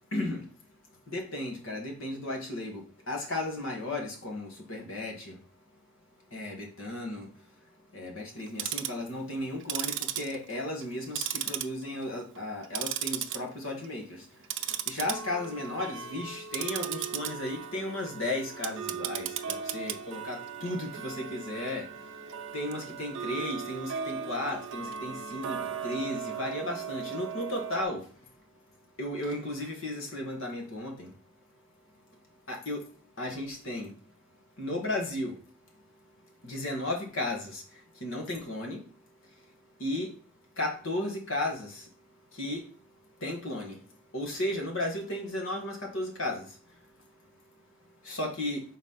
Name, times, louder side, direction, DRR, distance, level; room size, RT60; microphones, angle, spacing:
voice 1, 0.1-0.4 1.1-5.3 6.3-7.3 7.9-14.1 14.9-21.9 22.5-28.0 29.0-31.1 32.5-32.8 33.2-33.9 34.6-35.3 36.4-37.6 38.0-38.8 39.8-40.1 40.6-41.8 42.4-42.6 43.2-43.8 44.1-46.5 48.0-48.6, left 1 dB, 70° left, 1.6 m, -34 dB
Tick-tock, 8.4-9.0 9.6-10.9 11.2-12.0 12.4-13.4 13.7-14.0 14.4-27.8, right 9 dB, 65° right, 0.5 m, -36 dB
4.2 x 4.1 x 5.5 m
head